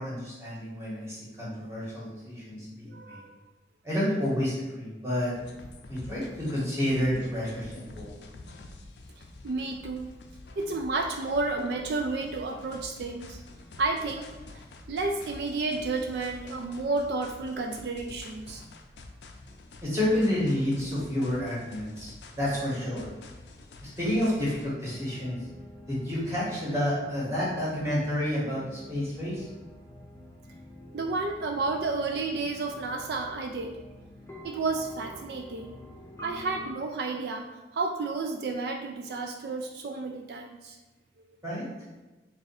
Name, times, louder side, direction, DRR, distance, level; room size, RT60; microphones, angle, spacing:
voice 1, 0.0-3.2 3.8-5.3 5.9-8.2 19.8-22.1 22.4-23.1 23.8-25.4 25.9-29.5 41.4-41.7, left 1 dB, 15° right, -8 dB, 1.3 m, -29 dB
voice 2, 2.9-3.3 9.2-10.1 10.6-13.4 13.8-14.3 14.9-18.6 30.9-33.8 34.4-35.8 36.2-40.8, right 3 dB, 65° right, 3 dB, 0.3 m, -31 dB
sound 1, 5.3-24.7, left 2 dB, 75° left, 0.4 m, -48 dB
sound 2, 24.8-36.7, left 1 dB, 15° left, 0.6 m, -48 dB
3.4 x 2.5 x 4.1 m, 1.1 s
head